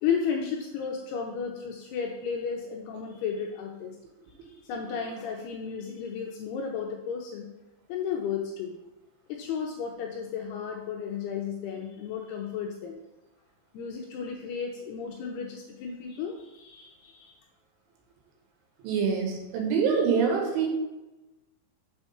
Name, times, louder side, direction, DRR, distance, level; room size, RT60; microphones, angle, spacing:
voice 1, 0.0-4.0 4.4-7.5 7.9-8.7 9.3-13.0 13.7-17.4, left 6 dB, 85° left, 1 dB, 2.4 m, -33 dB
voice 2, 18.8-20.7, right 6 dB, 85° right, 2 dB, 3.8 m, -25 dB
7.1 x 4.6 x 5.6 m, 1.0 s
omnidirectional pair, 5.3 m